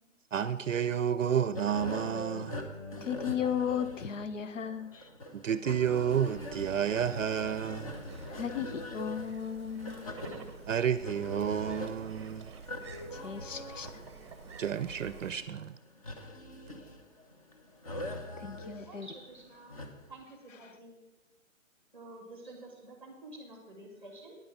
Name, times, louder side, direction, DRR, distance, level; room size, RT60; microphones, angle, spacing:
voice 1, 0.3-2.6 5.3-7.9 10.7-12.5 14.6-15.7, right 8 dB, 70° right, 0.6 m, -30 dB
sound 1, 1.5-20.2, left 1 dB, 25° left, 0.9 m, -43 dB
voice 2, 3.0-5.1 8.3-10.2 12.9-14.0 17.5-17.6 18.4-19.1 20.6-20.7, left 8 dB, 65° left, 1.1 m, -36 dB
sound 2, 6.2-15.4, right 4 dB, 20° right, 0.8 m, -49 dB
voice 3, 18.8-19.7 20.1-21.0 21.9-24.4, right 2 dB, 5° left, 1.2 m, -49 dB
9.7 x 8.9 x 5.8 m
hypercardioid pair, 165°, 40 cm